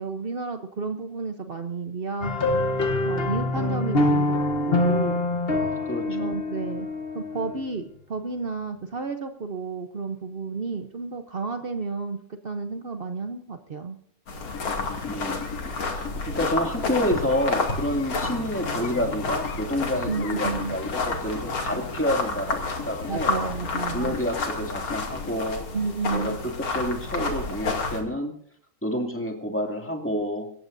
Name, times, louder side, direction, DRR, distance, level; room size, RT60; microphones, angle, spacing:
voice 1, 0.0-2.3 3.0-5.3 6.1-6.9 7.1-14.0 20.1-20.8 23.1-24.1 25.7-26.4, right 4 dB, 60° right, 6 dB, 0.6 m, -32 dB
sound 1, 2.2-7.8, left 2 dB, 30° left, 1.3 m, -25 dB
voice 2, 5.8-6.3 15.1-15.5 15.9-23.5 23.9-25.6 26.1-28.3 28.8-30.5, equal, 5° left, 2 dB, 2.2 m, -29 dB
sound 2, 14.3-28.0, left 3 dB, 80° left, 3.4 m, -30 dB
sound 3, 14.4-25.5, left 7 dB, 55° left, 1.0 m, -39 dB
26.5 x 14.5 x 2.7 m, 0.64 s
omnidirectional pair, 2.2 m